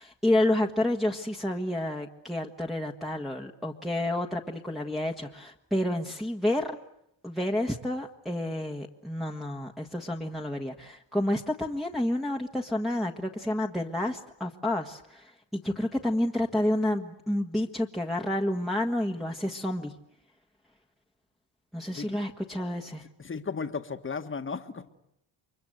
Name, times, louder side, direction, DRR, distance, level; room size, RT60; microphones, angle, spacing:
voice 1, 0.0-6.8 7.2-19.9 21.7-23.1, left 1 dB, ahead, -1 dB, 1.7 m, -29 dB
voice 2, 23.2-24.9, left 5 dB, 25° left, 7 dB, 1.8 m, -35 dB
29.5 x 23.5 x 8.0 m, 0.78 s
cardioid pair, 100°, 46 cm